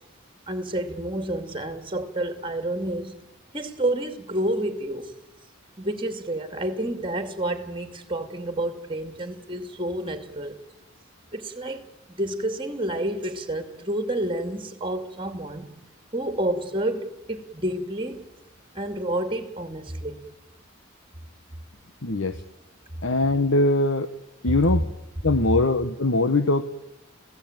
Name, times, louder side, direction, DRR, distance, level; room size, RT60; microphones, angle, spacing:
voice 1, 0.5-3.1 3.5-5.1 5.8-10.6 11.3-15.7 16.1-18.2 18.7-20.2, right 1 dB, 25° right, 2.6 m, -29 dB
voice 2, 22.0-22.4 23.0-24.1 24.4-24.8 25.2-26.6, left 2 dB, 70° left, 1.2 m, -21 dB
29.0 x 17.0 x 9.1 m
head